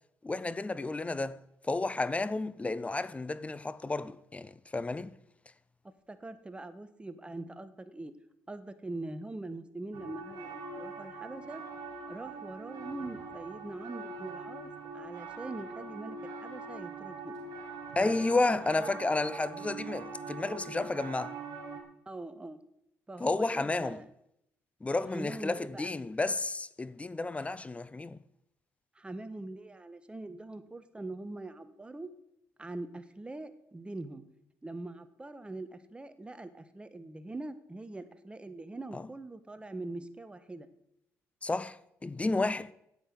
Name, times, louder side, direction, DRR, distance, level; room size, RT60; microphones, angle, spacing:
voice 1, 0.2-1.4 1.6-5.1 18.0-21.4 23.2-24.0 24.8-28.2 38.9-39.0 41.4-41.8 42.0-42.7, left 3 dB, 20° left, 0.6 m, -31 dB
voice 2, 5.8-8.1 8.5-11.6 12.1-17.4 18.0-18.9 22.0-22.6 23.1-24.1 24.9-25.9 27.4-27.5 28.9-32.1 32.6-34.2 34.6-40.7, right 2 dB, 15° right, 1.3 m, -43 dB
sound 1, 9.9-21.8, right 4 dB, 75° right, 3.4 m, -43 dB
10.0 x 8.1 x 8.2 m
supercardioid pair, 75°, 6 cm